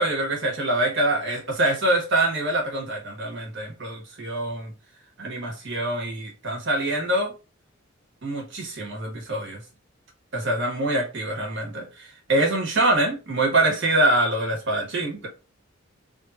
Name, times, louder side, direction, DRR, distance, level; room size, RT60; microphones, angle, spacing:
voice 1, 0.0-4.7 5.2-7.3 8.2-9.6 10.3-15.3, right 1 dB, 65° right, 1.5 m, -24 dB
3.4 x 2.6 x 4.2 m
head